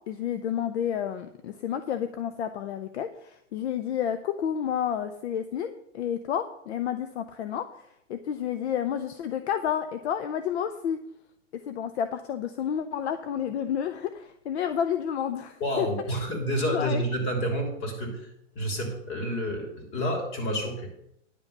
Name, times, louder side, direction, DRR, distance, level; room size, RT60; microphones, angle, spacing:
voice 1, 0.1-11.0 11.5-16.2 16.6-17.0, left 9 dB, 60° left, 10 dB, 0.8 m, -30 dB
voice 2, 15.6-18.3 18.5-20.9, equal, 30° left, 2 dB, 3.3 m, -29 dB
10.0 x 5.7 x 6.8 m, 0.77 s
hypercardioid pair, 120°, 38 cm